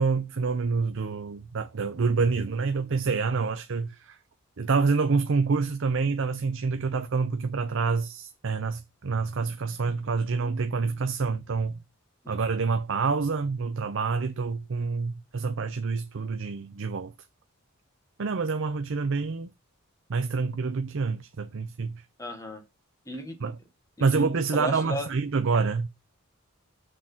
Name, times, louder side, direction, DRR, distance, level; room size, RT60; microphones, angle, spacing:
voice 1, 0.0-4.2 4.6-11.8 12.3-17.1 18.2-19.5 20.1-22.0 23.4-23.6 24.0-25.9, right 4 dB, 65° right, 0.6 m, -27 dB
voice 2, 22.2-22.6 23.0-23.5 24.0-25.1, left 1 dB, 15° left, 1.6 m, -36 dB
6.4 x 3.8 x 5.9 m
head